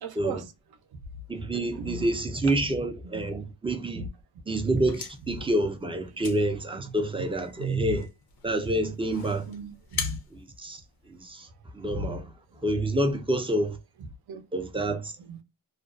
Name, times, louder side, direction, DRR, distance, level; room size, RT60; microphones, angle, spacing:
voice 1, 0.0-0.5 1.5-2.1 3.1-3.3 3.9-4.1 7.6-7.9 9.5-10.2 11.9-12.2 14.3-14.4 15.3-15.4, right 3 dB, 55° right, 0.7 m, -34 dB
voice 2, 1.3-4.1 4.5-8.1 8.4-9.4 10.3-10.8 11.1-11.5 11.7-12.2 12.6-13.8 14.5-15.1, right 1 dB, 15° right, 0.4 m, -28 dB
sound 1, 4.6-11.5, left 7 dB, 55° left, 0.6 m, -42 dB
2.5 x 2.1 x 2.3 m
cardioid pair, 100°, 43 cm